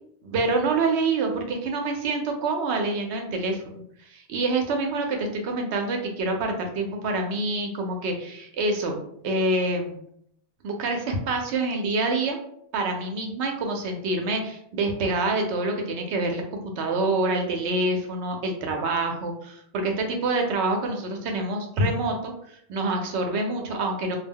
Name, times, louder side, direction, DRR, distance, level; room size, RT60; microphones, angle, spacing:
voice 1, 0.2-3.8 4.1-9.0 9.2-10.0 10.6-12.4 12.7-24.2, right 2 dB, 80° right, 3 dB, 0.8 m, -26 dB
2.2 x 2.1 x 3.5 m, 0.70 s
omnidirectional pair, 1.1 m